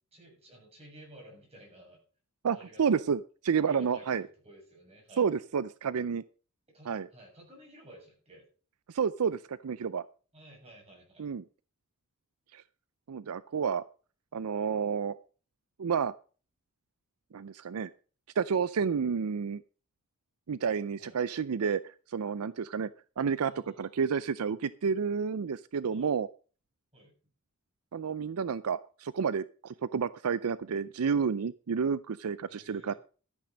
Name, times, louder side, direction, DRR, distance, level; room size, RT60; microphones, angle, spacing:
voice 1, 0.1-2.0 2.5-3.0 3.7-5.3 6.7-8.4 10.3-11.3 21.0-21.2 23.4-24.0 25.9-26.1 26.9-27.1 32.5-33.0, right 1 dB, 30° right, 0 dB, 7.0 m, -54 dB
voice 2, 2.4-4.2 5.2-6.2 6.9-7.1 8.9-10.1 11.2-11.4 12.5-12.6 13.1-13.8 14.3-15.2 15.8-16.1 17.3-17.9 18.4-19.6 20.5-22.9 23.2-26.3 27.9-32.9, right 6 dB, 75° right, 17 dB, 0.5 m, -30 dB
13.5 x 8.7 x 5.1 m, 0.38 s
head